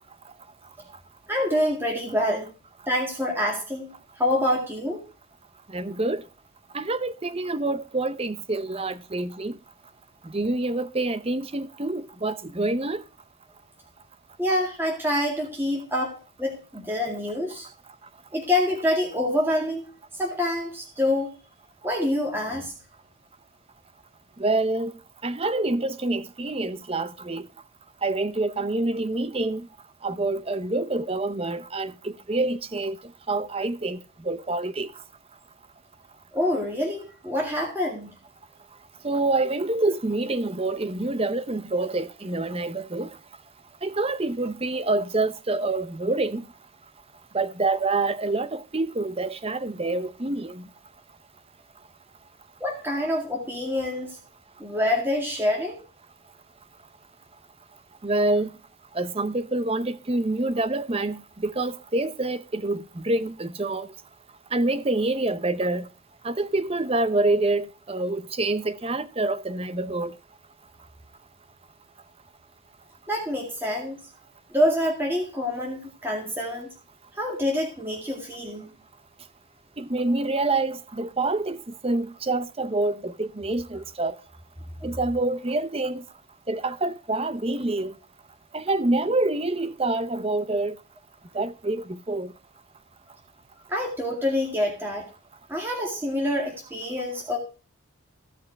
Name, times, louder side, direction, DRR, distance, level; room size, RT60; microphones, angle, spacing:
voice 1, 1.3-2.5 2.9-3.9 4.2-5.0 14.4-17.7 18.3-19.8 20.2-21.3 21.8-22.7 36.3-38.1 52.6-54.2 54.6-55.8 73.1-74.0 74.5-76.7 77.2-78.7 84.8-84.9 93.7-95.0 95.5-97.4, left 1 dB, 10° right, 2.1 m, -26 dB
voice 2, 5.7-6.2 6.7-9.6 10.2-13.0 24.4-24.9 25.2-27.5 28.0-29.7 30.0-33.0 33.3-34.9 39.0-43.1 43.8-46.4 47.3-50.6 58.0-58.5 58.9-63.9 64.5-65.9 66.2-70.1 79.8-81.6 81.8-84.2 84.8-86.0 86.5-87.9 88.5-90.8 91.3-92.3, right 2 dB, 25° right, 0.7 m, -26 dB
15.5 x 5.7 x 4.5 m
head